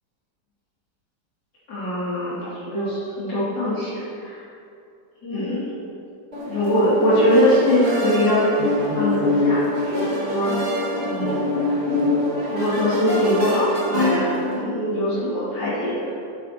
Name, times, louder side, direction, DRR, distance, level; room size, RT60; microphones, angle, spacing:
voice 1, 1.7-4.3 5.2-5.7 6.5-9.2 9.4-10.5 11.0-11.4 12.5-16.2, equal, 75° left, -14 dB, 3.7 m, -22 dB
sound 1, 6.3-14.6, left 1 dB, 35° right, 2.5 m, -24 dB
13.5 x 12.5 x 3.1 m, 2.5 s
omnidirectional pair, 1.9 m